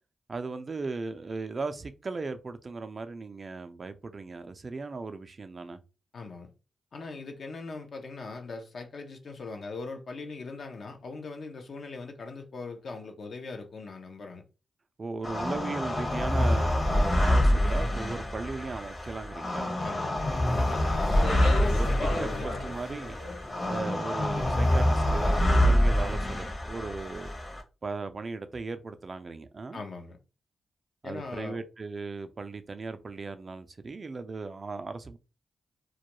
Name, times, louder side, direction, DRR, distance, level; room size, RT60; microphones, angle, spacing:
voice 1, 0.3-5.8 15.0-19.8 21.5-21.9 22.2-23.2 23.6-27.3 27.8-29.8 31.0-35.2, right 3 dB, 45° right, 0.4 m, -37 dB
voice 2, 6.1-6.5 6.9-14.4 19.8-22.7 29.7-30.2 31.0-31.6, left 3 dB, 65° left, 0.5 m, -40 dB
sound 1, 15.2-27.6, left 1 dB, 40° left, 0.8 m, -26 dB
Speech, 20.5-24.8, left 1 dB, 85° left, 0.9 m, -37 dB
2.3 x 2.1 x 2.9 m
supercardioid pair, 45°, 0 cm